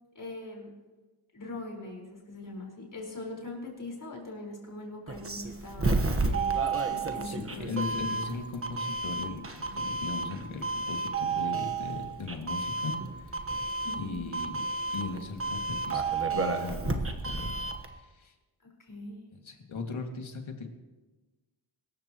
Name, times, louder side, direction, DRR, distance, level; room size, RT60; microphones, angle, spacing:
voice 1, 0.1-0.7 1.3-8.1 13.8-14.2 18.6-19.2, left 2 dB, 40° left, -2 dB, 4.8 m, -42 dB
Doorbell, 5.1-17.9, right 3 dB, 25° right, 1.3 m, -31 dB
voice 2, 7.2-13.6 13.9-14.6 14.9-17.5 17.8-18.3 19.4-20.7, left 4 dB, 70° left, 3 dB, 2.3 m, -38 dB
24.5 x 13.5 x 3.1 m, 1.2 s
wide cardioid pair, 120°, 50 cm